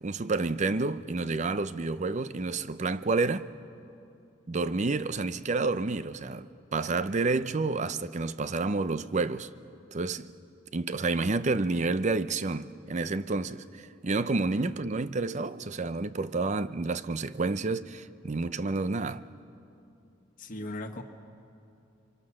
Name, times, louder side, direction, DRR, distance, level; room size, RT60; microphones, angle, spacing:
voice 1, 0.0-3.5 4.5-9.5 9.9-10.3 10.7-19.2, right 3 dB, 40° right, 0.6 m, -29 dB
voice 2, 20.4-21.0, left 1 dB, 45° left, 1.5 m, -38 dB
28.5 x 24.5 x 6.4 m
head